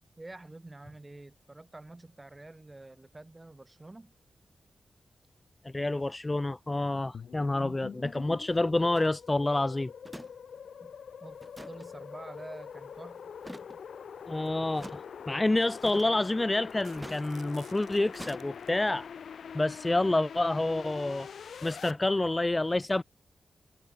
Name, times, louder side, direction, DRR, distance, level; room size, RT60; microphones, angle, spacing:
voice 1, 0.2-4.1 10.8-13.3, right 2 dB, 20° right, 6.4 m, -48 dB
voice 2, 5.6-9.9 14.3-19.1 19.5-21.3 21.6-23.0, left 2 dB, 20° left, 0.9 m, -28 dB
sound 1, 7.1-21.9, left 7 dB, 80° left, 0.9 m, -44 dB
sound 2, 8.9-9.1 10.1-10.3 10.6-10.7 11.4-11.9 13.4-13.8 14.8-15.0 15.8-16.2 17.0-17.3 18.2-18.4, equal, ahead, 3.3 m, -45 dB
sound 3, 13.6-13.8 14.3-15.3 15.9-16.0 16.2-16.4 16.7-18.9, right 7 dB, 80° right, 7.2 m, -57 dB
wide cardioid pair, 115°, 0 cm